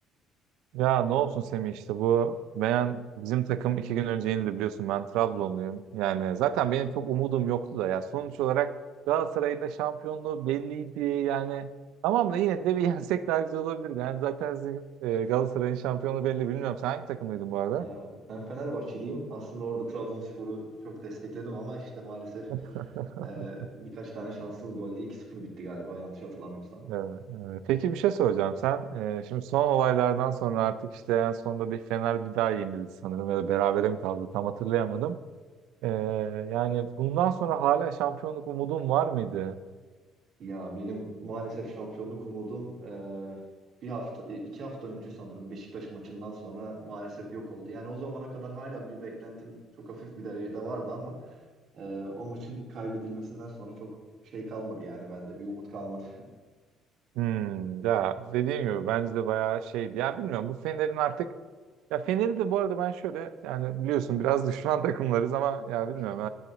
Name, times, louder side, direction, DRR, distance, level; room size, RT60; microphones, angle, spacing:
voice 1, 0.7-8.7 9.1-11.7 12.0-17.8 22.5-23.5 26.8-30.8 31.1-35.2 35.8-39.6 57.2-61.3 61.9-66.3, right 10 dB, 90° right, 12 dB, 0.4 m, -28 dB
voice 2, 17.8-22.5 23.2-26.8 40.4-43.4 43.8-49.5 49.9-51.4 51.7-53.9 54.2-56.1, right 2 dB, 45° right, -3 dB, 2.2 m, -38 dB
9.6 x 7.8 x 3.0 m, 1.4 s
cardioid pair, 150°, 0 cm